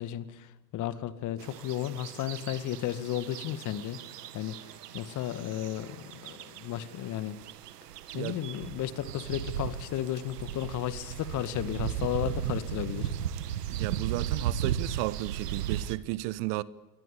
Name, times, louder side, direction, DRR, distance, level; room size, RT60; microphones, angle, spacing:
voice 1, 0.0-4.0 4.3-4.6 4.9-7.4 8.1-13.1, left 11 dB, 35° left, 2.1 m, -34 dB
sound 1, 1.4-16.0, right 10 dB, 65° right, 2.0 m, -36 dB
voice 2, 13.7-16.6, right 19 dB, 45° right, 1.1 m, -33 dB
28.5 x 23.0 x 8.4 m
figure-of-eight pair, 85°, 50 cm